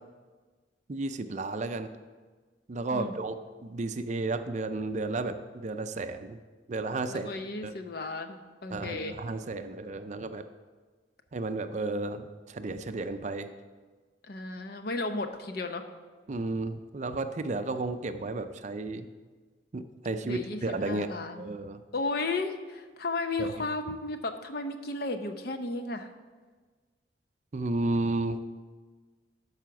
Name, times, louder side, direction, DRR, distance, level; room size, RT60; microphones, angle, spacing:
voice 1, 0.9-1.9 2.7-3.4 3.6-6.4 6.7-7.3 7.6-7.7 8.7-10.4 11.3-13.5 16.3-19.1 19.7-21.1 21.4-21.8 23.4-23.5 27.5-28.5, right 2 dB, 40° right, 9 dB, 0.5 m, -33 dB
voice 2, 7.1-9.2 14.3-15.8 20.2-21.5 21.9-26.1, left 3 dB, 55° left, 7 dB, 0.7 m, -34 dB
12.5 x 4.9 x 5.9 m, 1.4 s
head